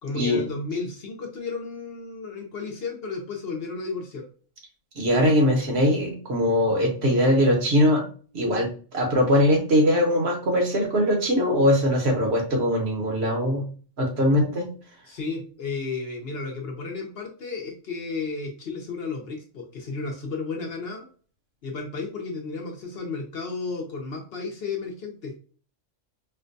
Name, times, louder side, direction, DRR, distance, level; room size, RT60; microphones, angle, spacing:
voice 1, 0.0-4.3 15.1-21.1 21.6-25.4, left 4 dB, 60° left, 1 dB, 0.8 m, -33 dB
voice 2, 5.0-8.0 8.3-13.6 14.0-14.7, left 1 dB, 55° right, 2 dB, 1.0 m, -21 dB
4.3 x 2.2 x 2.5 m, 0.41 s
omnidirectional pair, 1.3 m